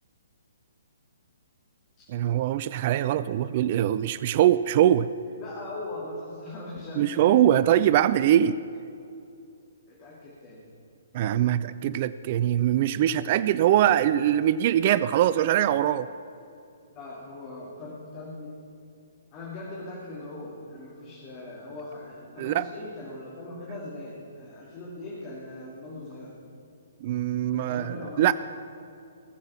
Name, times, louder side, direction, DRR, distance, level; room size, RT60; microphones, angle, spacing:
voice 1, 2.1-5.1 7.0-8.6 11.1-16.1 22.4-22.7 27.0-28.3, right 11 dB, 35° right, 16 dB, 0.3 m, -22 dB
voice 2, 5.4-7.5 9.9-10.6 16.9-18.5 19.3-26.3 27.5-28.3, left 2 dB, 25° left, -6 dB, 2.7 m, -40 dB
20.0 x 7.4 x 6.1 m, 2.6 s
figure-of-eight pair, 125°, 0 cm